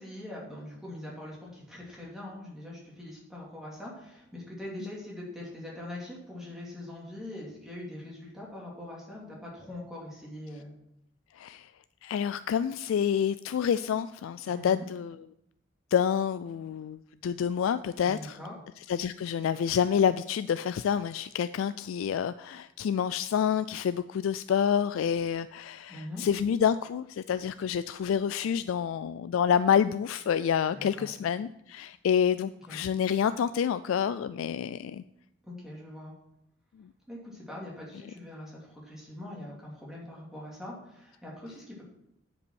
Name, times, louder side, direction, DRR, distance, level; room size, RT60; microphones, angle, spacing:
voice 1, 0.0-10.7 14.5-14.9 18.0-18.5 25.9-26.2 30.7-31.1 32.7-32.8 35.4-36.1 37.1-41.8, left 1 dB, 5° right, -5 dB, 2.6 m, -42 dB
voice 2, 11.4-11.7 12.0-15.3 15.9-18.4 18.9-35.0 36.8-36.9, left 8 dB, 85° left, 13 dB, 0.3 m, -28 dB
9.9 x 5.3 x 6.2 m, 0.79 s
head